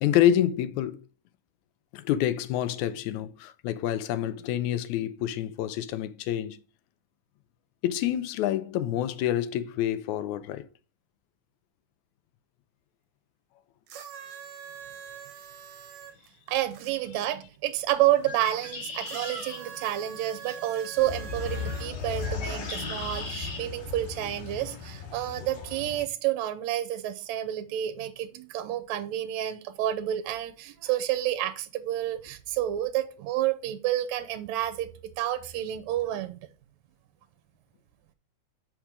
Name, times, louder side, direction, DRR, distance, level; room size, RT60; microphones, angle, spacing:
voice 1, 0.0-1.0 1.9-6.6 7.8-10.7, left 11 dB, 80° left, 1.9 m, -27 dB
sound 1, 13.9-16.9 19.0-22.3 23.2-23.3, right 8 dB, 60° right, 1.7 m, -43 dB
voice 2, 16.5-34.9 35.2-36.5, right 13 dB, 75° right, 1.8 m, -29 dB
Bird, 18.1-23.6, left 3 dB, 50° left, 2.7 m, -41 dB
sound 2, 21.0-26.0, left 5 dB, 65° left, 3.1 m, -36 dB
6.1 x 5.2 x 4.7 m
omnidirectional pair, 3.5 m